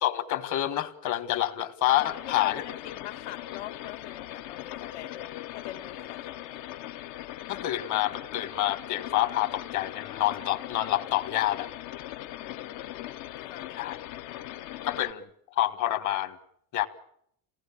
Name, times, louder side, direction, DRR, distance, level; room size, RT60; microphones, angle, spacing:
voice 1, 0.0-2.6 7.5-11.7 13.8-14.0 14.8-15.3 15.6-16.4 16.7-16.9, left 13 dB, 45° left, 10 dB, 1.7 m, -27 dB
voice 2, 1.9-6.6 12.3-12.9 13.5-13.8, left 12 dB, 85° left, 3 dB, 3.1 m, -43 dB
sound 1, 2.0-15.1, left 13 dB, 60° left, 1.0 m, -40 dB
28.0 x 18.0 x 8.6 m, 0.72 s
cardioid pair, 170°, 42 cm